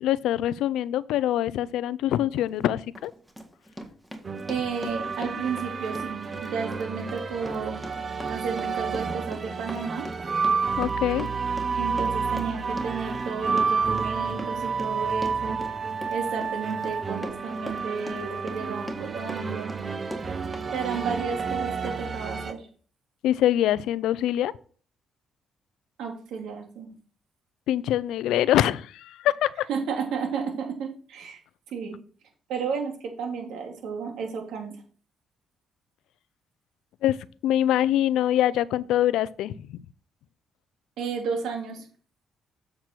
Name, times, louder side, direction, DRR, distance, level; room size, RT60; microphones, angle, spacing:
voice 1, 0.0-3.1 10.8-11.3 23.2-24.5 27.7-29.7 37.0-37.2 37.4-39.7, left 12 dB, 90° left, 0.4 m, -24 dB
Run, 2.3-2.5 2.9-20.7 20.9-21.5 21.8-21.9, equal, 5° right, 1.7 m, -40 dB
sound 1, 4.2-22.5, right 5 dB, 40° right, 1.0 m, -30 dB
voice 2, 4.5-7.8 8.3-10.1 11.7-15.6 16.1-19.8 20.7-22.6 26.0-26.9 29.7-31.4 31.7-32.0 32.5-34.8 41.0-41.9, right 6 dB, 85° right, 2.6 m, -32 dB
7.6 x 6.6 x 4.4 m
cardioid pair, 90°, 0 cm